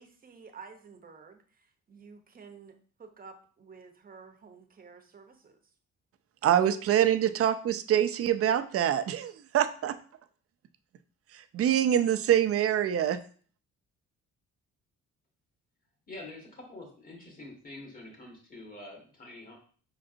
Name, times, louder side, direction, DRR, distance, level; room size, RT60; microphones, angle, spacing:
voice 1, 0.0-5.6, right 5 dB, 30° right, 6 dB, 0.8 m, -51 dB
voice 2, 6.4-10.0 11.3-13.2, right 10 dB, 50° right, 11 dB, 0.5 m, -25 dB
voice 3, 16.1-19.6, left 2 dB, 30° left, 0 dB, 1.8 m, -46 dB
5.2 x 3.9 x 2.6 m, 0.43 s
cardioid pair, 90°, 30 cm